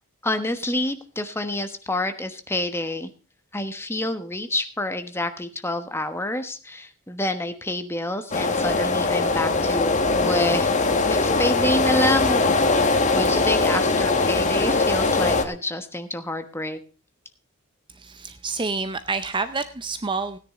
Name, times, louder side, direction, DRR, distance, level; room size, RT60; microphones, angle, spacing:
voice 1, 0.2-3.1 3.5-10.7 11.1-12.8 13.1-16.8, left 1 dB, 10° left, 8 dB, 1.2 m, -28 dB
sound 1, 8.3-15.4, left 3 dB, 35° left, 1.4 m, -21 dB
voice 2, 18.0-20.4, right 4 dB, 20° right, 11 dB, 0.6 m, -28 dB
17.0 x 10.0 x 3.7 m, 0.35 s
head